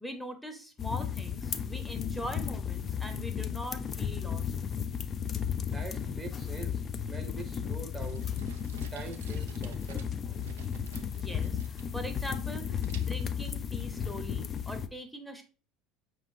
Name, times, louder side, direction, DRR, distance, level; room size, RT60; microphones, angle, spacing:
voice 1, 0.0-4.4 11.1-15.4, left 1 dB, ahead, 0.7 m, -41 dB
sound 1, 0.8-14.9, left 8 dB, 40° left, 0.4 m, -34 dB
voice 2, 5.6-6.8 7.1-8.3 8.9-10.0, right 3 dB, 30° right, 0.7 m, -43 dB
sound 2, 8.0-12.6 12.8-13.4, right 5 dB, 85° right, 0.3 m, -50 dB
5.0 x 3.2 x 2.6 m
hypercardioid pair, 80°, 0 cm